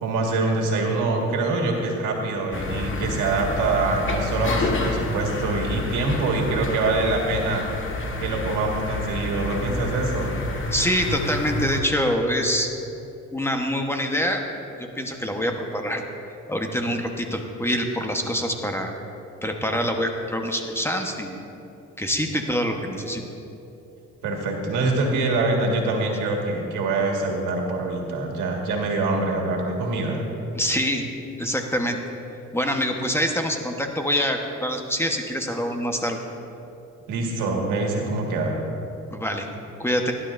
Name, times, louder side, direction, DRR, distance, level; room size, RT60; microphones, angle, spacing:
voice 1, 0.0-7.6 8.2-10.4 24.2-30.2 37.1-38.6, right 3 dB, 90° right, 0 dB, 1.8 m, -24 dB
sound 1, 2.5-11.8, left 2 dB, 40° left, 1.5 m, -29 dB
voice 2, 10.7-12.7 13.3-14.4 14.8-16.0 16.5-18.9 19.4-21.4 22.0-23.2 30.5-31.1 31.4-32.0 32.5-36.2 39.1-39.5 39.8-40.1, equal, 10° left, 3 dB, 1.1 m, -25 dB
18.0 x 11.0 x 2.6 m, 2.8 s
cardioid pair, 90°, 30 cm